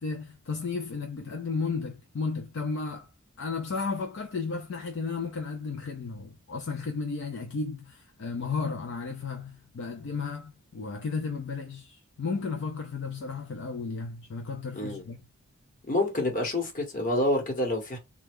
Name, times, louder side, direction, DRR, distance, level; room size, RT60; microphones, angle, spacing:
voice 1, 0.0-3.1 3.4-15.2, left 4 dB, 55° left, 0.4 m, -34 dB
voice 2, 15.9-18.0, left 1 dB, 35° left, 1.1 m, -27 dB
3.3 x 2.3 x 3.4 m
head